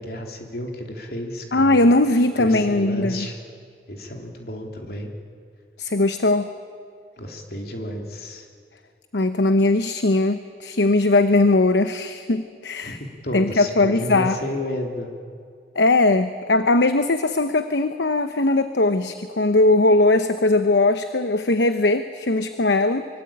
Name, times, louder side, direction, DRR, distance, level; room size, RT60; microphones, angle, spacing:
voice 1, 0.0-1.9 2.3-3.4 3.9-5.1 7.2-8.4 12.8-13.0 13.2-15.1, left 1 dB, 60° left, 2 dB, 3.2 m, -31 dB
voice 2, 1.5-3.3 5.8-6.5 9.1-13.0 13.3-14.4 15.7-23.1, left 2 dB, 75° left, 9 dB, 0.9 m, -19 dB
24.5 x 23.5 x 8.8 m, 2.3 s
head